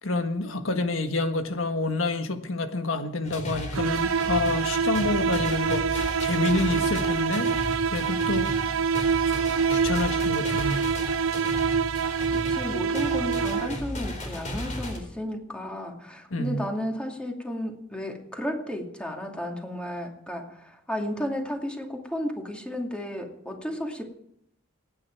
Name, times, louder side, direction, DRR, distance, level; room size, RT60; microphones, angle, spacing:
voice 1, 0.0-8.5 9.2-10.9 16.3-16.6, left 2 dB, 75° left, 1.6 m, -28 dB
sound 1, 3.2-15.0, left 1 dB, 40° left, 4.1 m, -35 dB
sound 2, 3.7-14.0, right 6 dB, 80° right, 0.5 m, -26 dB
voice 2, 12.0-24.0, equal, 5° left, 2.5 m, -33 dB
26.0 x 9.8 x 4.7 m
head